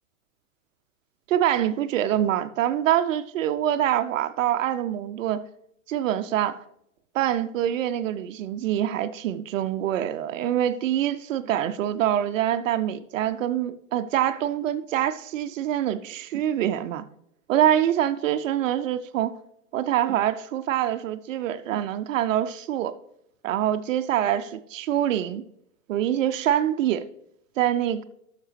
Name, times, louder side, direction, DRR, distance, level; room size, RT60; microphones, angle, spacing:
voice 1, 1.3-5.4 5.9-6.6 7.1-17.0 17.5-19.4 19.7-22.9 23.4-25.4 25.9-27.1 27.6-28.0, right 11 dB, 60° right, 0.6 m, -25 dB
12.5 x 6.5 x 3.3 m
hypercardioid pair, 105°, 45 cm